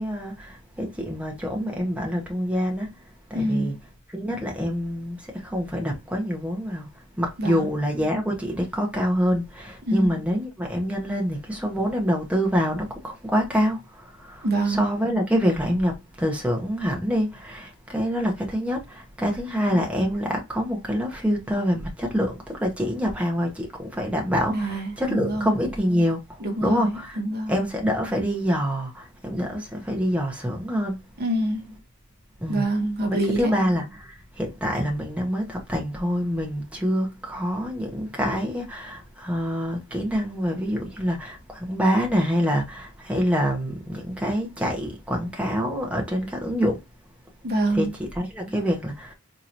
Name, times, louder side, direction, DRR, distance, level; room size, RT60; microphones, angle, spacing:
voice 1, 0.0-2.9 3.3-3.8 4.1-6.9 7.2-27.2 27.5-31.0 32.4-32.7 33.1-46.8 47.7-49.1, equal, 5° right, 0.8 m, -26 dB
voice 2, 3.3-3.8 7.4-7.7 9.9-10.1 14.4-14.9 19.7-19.9 24.5-25.5 26.4-27.5 31.2-31.6 32.5-33.5 47.4-47.9, right 1 dB, 45° right, 0.8 m, -26 dB
4.4 x 2.8 x 2.6 m
head